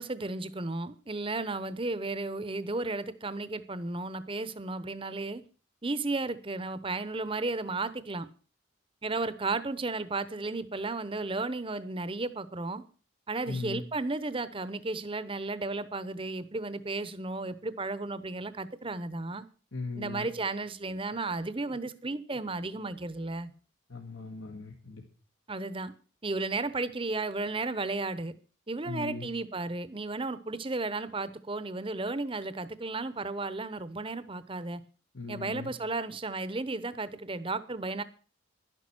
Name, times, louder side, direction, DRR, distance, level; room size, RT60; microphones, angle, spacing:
voice 1, 0.0-5.4 5.8-8.3 9.0-12.8 13.3-19.5 20.0-23.5 25.5-25.9 26.2-28.3 28.7-34.8 35.3-38.0, right 3 dB, 25° right, 0.8 m, -34 dB
voice 2, 13.4-13.8 19.7-20.3 23.9-25.0 28.9-29.3 35.1-35.7, left 3 dB, 80° left, 2.0 m, -38 dB
11.5 x 10.5 x 6.1 m
head